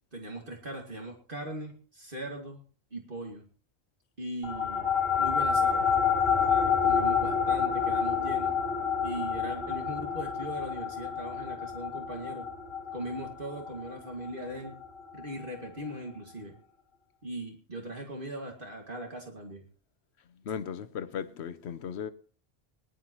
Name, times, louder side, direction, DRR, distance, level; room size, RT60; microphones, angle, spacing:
voice 1, 0.1-2.6 2.9-3.4 4.2-4.9 5.2-5.9 6.5-8.5 9.0-12.5 12.9-14.7 15.1-16.5 17.2-19.6, right 1 dB, 55° right, 2.3 m, -39 dB
sound 1, 4.4-15.2, left 6 dB, 65° left, 1.9 m, -28 dB
voice 2, 20.5-22.1, left 7 dB, 90° left, 1.0 m, -36 dB
21.0 x 11.5 x 3.0 m
omnidirectional pair, 1.1 m